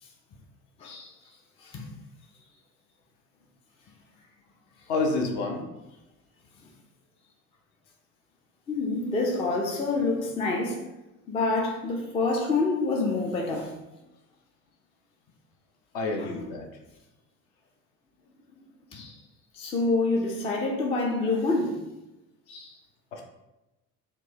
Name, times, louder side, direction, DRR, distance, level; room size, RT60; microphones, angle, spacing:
voice 1, 0.8-1.1 1.6-1.8 8.7-10.8 11.3-13.8 16.2-16.3 18.9-19.2 19.5-21.8 22.5-22.8, left 3 dB, 15° left, 0.3 m, -27 dB
voice 2, 4.9-5.6 15.9-16.7 23.1-23.2, left 3 dB, 55° left, 0.7 m, -28 dB
4.2 x 2.2 x 2.7 m
figure-of-eight pair, 55°, 45 cm